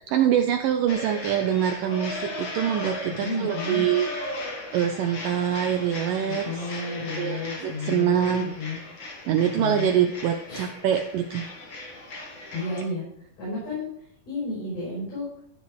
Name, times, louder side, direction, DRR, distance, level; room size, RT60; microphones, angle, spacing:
voice 1, 0.0-4.1 4.7-6.5 7.2-8.5 9.3-11.5, right 9 dB, 80° right, 5 dB, 2.1 m, -24 dB
sound 1, 0.9-12.8, left 1 dB, 40° left, 2.1 m, -36 dB
voice 2, 3.1-3.8 6.3-8.8 9.2-9.3 9.5-9.9 10.5-10.7 12.5-13.9 14.3-15.3, left 2 dB, 70° left, -6 dB, 6.1 m, -32 dB
14.0 x 4.7 x 4.8 m, 0.74 s
omnidirectional pair, 4.4 m